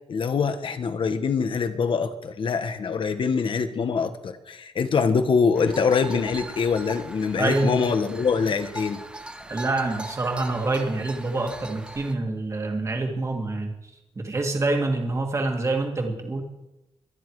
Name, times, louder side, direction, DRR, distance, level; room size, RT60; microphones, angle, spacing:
voice 1, 0.1-9.0, left 5 dB, 55° left, 9 dB, 1.5 m, -24 dB
sound 1, 5.5-12.1, right 2 dB, 10° right, 1.2 m, -40 dB
voice 2, 7.4-7.8 9.5-13.7 14.2-16.4, right 2 dB, 30° right, 2 dB, 2.2 m, -26 dB
24.0 x 10.5 x 4.9 m, 0.95 s
wide cardioid pair, 140°, 11 cm